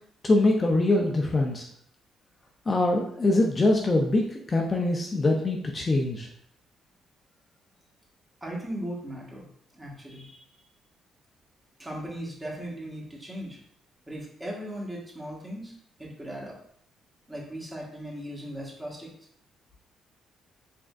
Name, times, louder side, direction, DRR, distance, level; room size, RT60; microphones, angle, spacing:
voice 1, 0.2-1.7 2.7-6.3, left 2 dB, 30° left, 1 dB, 0.6 m, -23 dB
voice 2, 8.4-9.5 9.7-10.5 11.8-13.6 14.1-15.7 16.0-16.6 17.3-19.1, right 1 dB, 15° right, -3 dB, 1.5 m, -38 dB
4.8 x 3.5 x 2.5 m, 0.67 s
cardioid pair, 90°, 0 cm